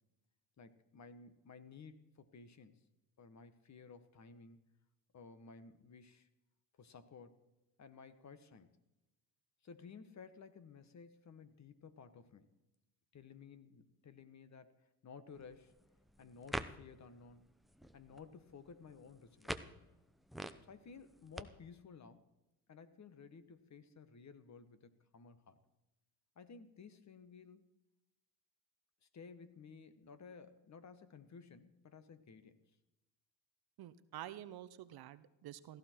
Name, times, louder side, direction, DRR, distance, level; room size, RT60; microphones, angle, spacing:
voice 1, 0.6-2.9 3.2-4.6 5.1-6.3 6.8-7.5 7.8-8.8 9.6-12.5 13.1-15.7 16.2-17.5 17.9-19.7 20.6-22.3 22.7-25.6 26.3-27.7 29.0-32.6, left 5 dB, 35° left, 12 dB, 1.4 m, -56 dB
sound 1, 15.3-21.4, equal, ahead, 0.6 m, -48 dB
voice 2, 33.8-35.8, right 12 dB, 50° right, 14 dB, 0.8 m, -49 dB
16.0 x 14.5 x 4.6 m, 0.96 s
supercardioid pair, 85°, 49 cm